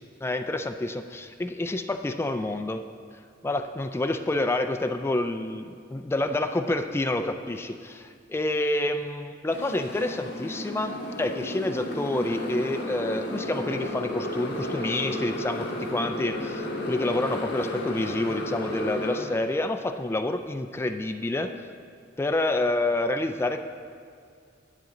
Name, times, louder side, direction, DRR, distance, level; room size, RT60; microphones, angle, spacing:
voice 1, 0.2-2.8 3.4-21.7 22.2-23.6, left 2 dB, 15° left, 7 dB, 0.3 m, -28 dB
Motorcycle, 9.5-19.2, left 1 dB, 65° left, 1.4 m, -33 dB
10.5 x 8.2 x 3.9 m, 2.2 s
head